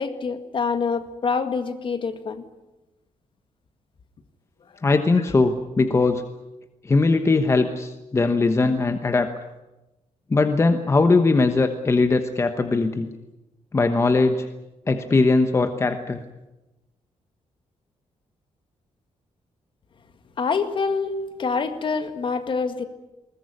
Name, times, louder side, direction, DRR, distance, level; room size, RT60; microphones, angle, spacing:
voice 1, 0.0-2.4 20.4-22.8, left 5 dB, 45° left, 9 dB, 1.9 m, -26 dB
voice 2, 4.8-6.2 6.8-9.3 10.3-13.1 13.7-14.5 14.9-16.2, left 3 dB, 25° left, 8 dB, 1.1 m, -20 dB
21.0 x 20.0 x 9.7 m, 1.0 s
wide cardioid pair, 165°, 12 cm